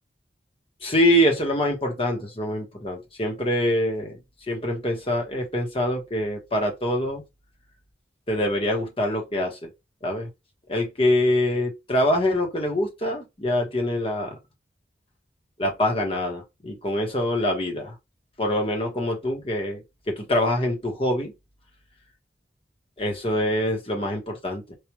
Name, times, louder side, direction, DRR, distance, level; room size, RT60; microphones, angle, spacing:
voice 1, 0.8-4.2 4.5-7.2 8.3-9.7 10.0-10.3 10.7-14.4 15.6-17.9 18.4-21.3 23.0-24.7, left 1 dB, 30° left, 1.1 m, -25 dB
4.8 x 2.4 x 3.0 m
head